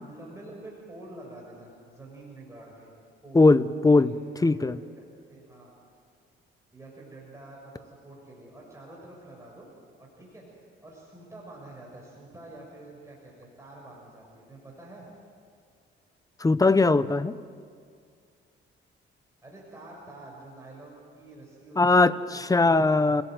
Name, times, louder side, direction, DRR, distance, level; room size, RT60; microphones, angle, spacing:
voice 1, 0.1-2.9 3.2-3.5 3.9-4.6 5.3-5.7 6.7-9.7 10.0-15.1 19.4-23.2, right 2 dB, 15° right, -3 dB, 6.5 m, -47 dB
voice 2, 3.3-4.1 4.4-4.8 16.4-17.4 21.8-23.2, left 3 dB, 15° left, 14 dB, 0.8 m, -20 dB
29.0 x 18.0 x 7.8 m, 2.2 s
cardioid pair, 90°, 20 cm